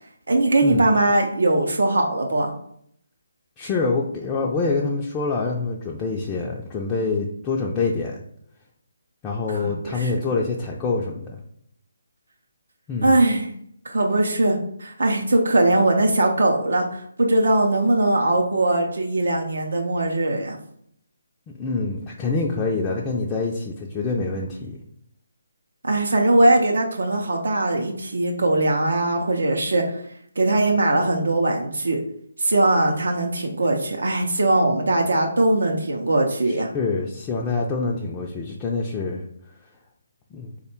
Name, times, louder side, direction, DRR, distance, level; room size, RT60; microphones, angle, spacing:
voice 1, 0.3-2.5 9.5-10.1 13.0-13.5 13.8-20.6 25.8-29.8 30.4-32.0 32.4-36.7, right 2 dB, 75° right, 1 dB, 0.5 m, -20 dB
voice 2, 3.6-8.2 9.2-11.4 12.9-13.2 21.6-24.8 36.5-39.2 40.3-40.5, left 3 dB, 15° left, -3 dB, 0.3 m, -26 dB
3.2 x 2.1 x 4.3 m, 0.69 s
figure-of-eight pair, 150°, 0 cm